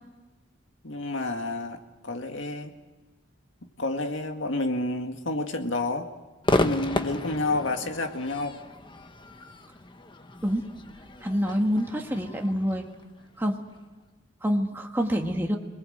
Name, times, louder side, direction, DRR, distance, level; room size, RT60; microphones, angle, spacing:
voice 1, 0.8-2.7 3.8-6.1 6.6-8.6, left 2 dB, 80° left, 5 dB, 2.0 m, -29 dB
Crowd / Fireworks, 6.4-13.8, left 1 dB, 25° left, 1.1 m, -33 dB
voice 2, 11.2-12.9 13.4-13.6 14.4-15.6, equal, 10° right, 1 dB, 1.6 m, -26 dB
27.0 x 20.5 x 7.9 m, 1.2 s
head